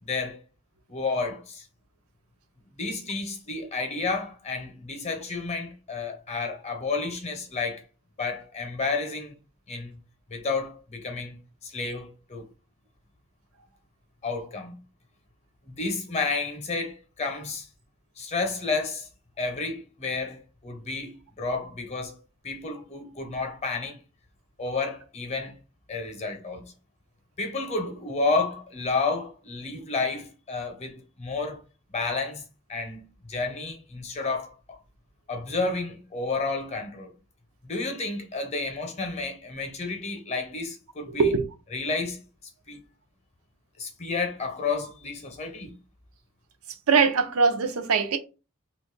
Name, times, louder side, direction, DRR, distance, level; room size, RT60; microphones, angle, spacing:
voice 1, 0.0-0.4 0.9-1.7 2.8-7.8 8.2-9.3 9.7-10.0 10.3-12.5 14.2-14.8 15.6-17.7 18.2-19.1 19.4-22.2 22.4-24.0 24.6-25.5 25.9-26.7 27.4-31.6 31.9-34.8 35.3-37.1 37.6-41.3 41.7-42.2 42.7-42.8 43.8-45.7, left 3 dB, 30° left, 0.7 m, -31 dB
voice 2, 46.9-48.2, right 5 dB, 90° right, 0.5 m, -21 dB
2.5 x 2.3 x 3.8 m
head